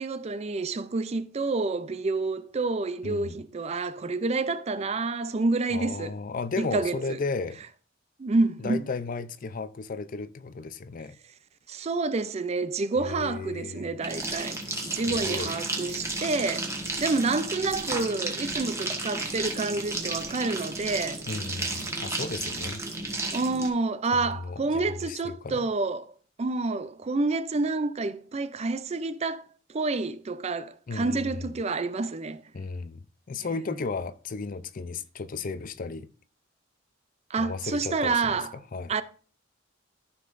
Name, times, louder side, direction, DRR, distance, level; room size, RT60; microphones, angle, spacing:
voice 1, 0.0-6.1 6.6-7.2 8.2-8.8 11.7-14.6 14.8-16.7 17.0-21.2 23.3-26.1 26.4-29.4 29.7-32.4 37.3-38.5 38.9-39.0, right 3 dB, 35° right, 0.4 m, -28 dB
voice 2, 3.0-3.4 5.7-7.6 8.6-11.1 13.0-14.0 14.7-15.6 21.3-22.8 24.1-25.7 30.9-31.3 32.5-33.0 33.3-36.1 37.4-38.4 38.7-38.9, left 4 dB, 45° left, 0.5 m, -34 dB
sound 1, 14.0-23.7, right 2 dB, 15° right, 1.4 m, -33 dB
13.5 x 5.6 x 2.6 m
head